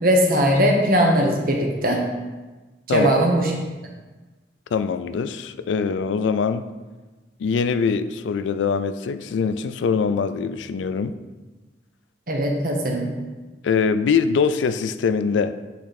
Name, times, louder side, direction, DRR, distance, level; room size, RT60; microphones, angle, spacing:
voice 1, 0.0-2.0 2.9-3.5 12.3-13.1, equal, 50° right, 0 dB, 1.0 m, -19 dB
voice 2, 4.7-6.7 7.4-11.1 13.6-15.5, left 5 dB, 90° left, 11 dB, 0.3 m, -23 dB
8.3 x 3.2 x 4.1 m, 1.2 s
head